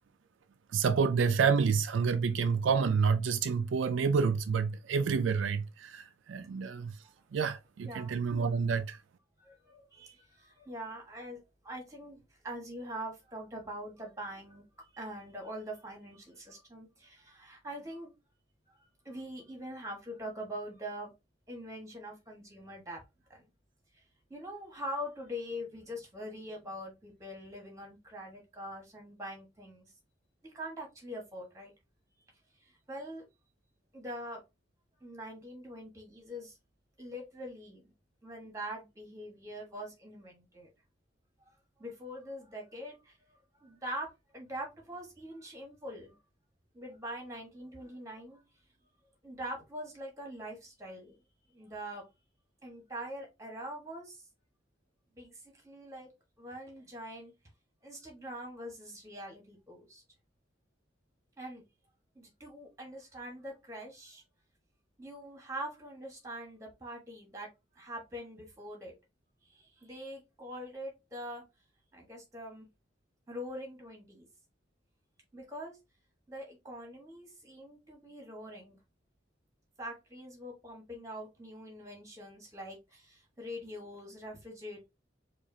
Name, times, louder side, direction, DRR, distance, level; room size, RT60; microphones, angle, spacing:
voice 1, 0.7-6.9 7.3-9.0, right 5 dB, 75° right, 0.4 m, -28 dB
voice 2, 7.8-8.2 9.4-18.1 18.7-21.1 21.5-23.0 23.3-23.4 24.3-29.9 30.4-31.7 32.6-33.2 33.9-34.4 35.0-36.6 37.0-37.9 38.2-40.7 41.8-46.2 46.7-48.4 49.2-51.1 51.5-52.0 52.6-54.2 55.2-56.1 56.4-57.3 57.8-60.0 61.4-61.6 62.1-64.2 65.0-67.5 67.7-68.9 69.5-71.4 71.9-72.7 73.3-74.3 75.3-75.8 76.3-78.8 79.8-84.9, equal, 15° right, 1.3 m, -43 dB
4.7 x 2.4 x 2.7 m
head